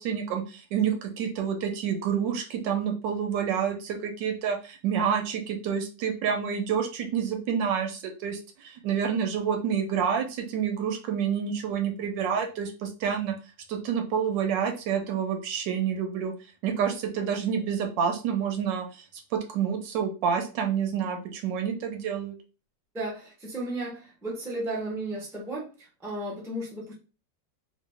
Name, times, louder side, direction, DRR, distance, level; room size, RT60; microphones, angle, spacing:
voice 1, 0.0-13.3 13.7-16.3 16.6-18.9 19.3-22.4, right 7 dB, 80° right, 5 dB, 1.3 m, -28 dB
voice 2, 22.9-26.9, right 1 dB, 5° right, -3 dB, 0.5 m, -34 dB
3.0 x 2.5 x 3.4 m, 0.34 s
omnidirectional pair, 1.9 m